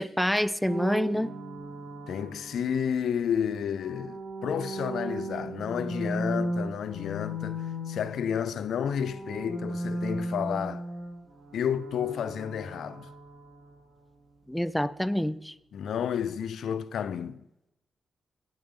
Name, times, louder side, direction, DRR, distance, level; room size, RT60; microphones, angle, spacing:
voice 1, 0.0-1.3 14.5-15.5, equal, 5° left, 0.3 m, -27 dB
sound 1, 0.7-3.1 3.7-8.6 8.8-13.8, right 1 dB, 60° right, 2.5 m, -36 dB
voice 2, 2.1-10.8 11.5-13.1 15.7-17.4, left 8 dB, 80° left, 0.4 m, -31 dB
8.8 x 8.7 x 3.7 m
cardioid pair, 75°, 0 cm